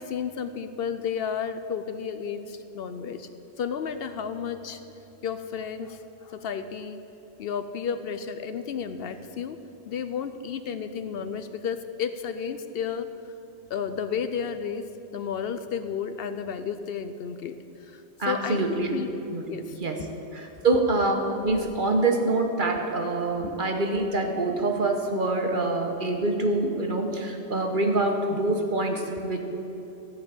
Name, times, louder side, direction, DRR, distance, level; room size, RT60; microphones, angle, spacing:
voice 1, 0.0-3.3 3.6-4.8 5.2-7.0 7.4-9.6 9.9-13.1 13.7-14.8 15.1-17.6 17.9-19.2 19.5-20.1 23.4-23.5, left 7 dB, 65° left, 10 dB, 0.7 m, -32 dB
voice 2, 18.2-18.9 19.3-20.0 20.3-29.4, right 2 dB, 50° right, 3 dB, 1.3 m, -25 dB
14.0 x 5.4 x 8.8 m, 2.9 s
omnidirectional pair, 1.1 m